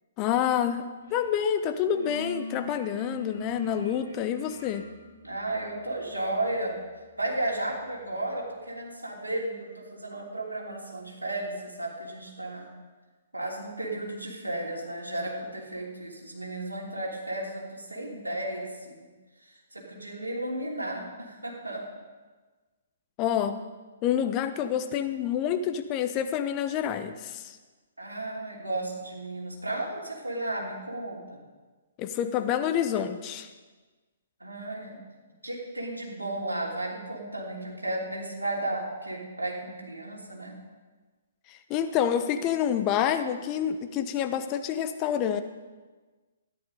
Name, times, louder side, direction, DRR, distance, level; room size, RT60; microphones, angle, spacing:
voice 1, 0.2-4.9 23.2-23.6 24.0-27.6 32.0-33.5 41.5-45.4, left 9 dB, 30° left, 9 dB, 0.9 m, -28 dB
sound 1, 1.1-1.3 1.6-8.2, left 2 dB, 55° right, 4.1 m, -42 dB
voice 2, 5.2-6.8 7.2-12.7 13.3-19.1 19.7-21.8 28.0-31.2 34.4-35.0 35.4-40.6, right 1 dB, 90° right, -3 dB, 3.2 m, -34 dB
14.0 x 11.0 x 5.2 m, 1.3 s
figure-of-eight pair, 125°, 0 cm